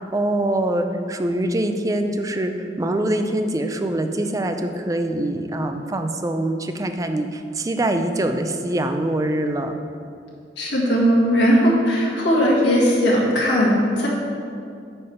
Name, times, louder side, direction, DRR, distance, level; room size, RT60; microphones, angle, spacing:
voice 1, 0.1-9.7, right 1 dB, 20° right, 6 dB, 0.4 m, -24 dB
voice 2, 10.6-14.1, equal, 85° left, -5 dB, 1.8 m, -18 dB
8.6 x 3.4 x 5.5 m, 2.4 s
head